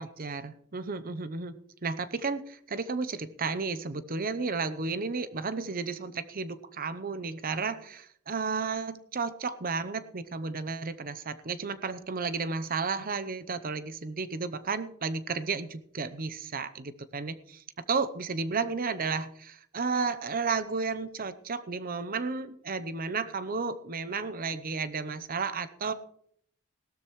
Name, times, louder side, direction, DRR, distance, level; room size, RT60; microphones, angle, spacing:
voice 1, 0.0-25.9, right 4 dB, 45° right, 14 dB, 0.8 m, -33 dB
17.5 x 12.5 x 3.2 m, 0.66 s
head